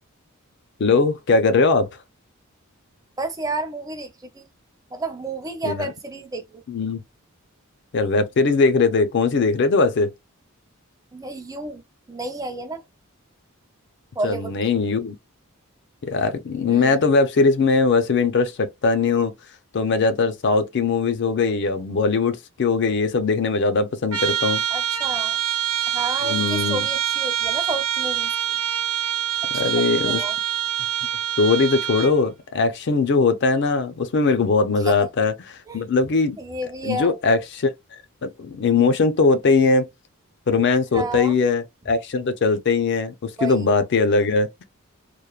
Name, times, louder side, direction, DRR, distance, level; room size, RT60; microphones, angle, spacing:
voice 1, 0.8-1.9 5.6-5.9 6.7-7.0 7.9-10.1 14.2-15.2 16.0-19.3 19.7-24.6 26.2-26.8 29.5-30.2 31.4-35.3 35.7-36.4 36.8-37.7 38.2-39.9 40.5-44.5, left 4 dB, 50° left, 0.4 m, -20 dB
voice 2, 3.2-4.5 4.9-6.6 11.1-11.8 12.1-12.8 14.2-14.7 16.7-17.0 24.7-25.4 25.9-28.6 29.5-30.4 34.9-35.0 35.7-35.8 36.4-37.2 40.9-41.3 43.4-43.6, right 2 dB, 15° right, 0.5 m, -31 dB
Trumpet, 24.1-32.2, right 10 dB, 85° right, 0.6 m, -25 dB
3.0 x 2.1 x 2.3 m
head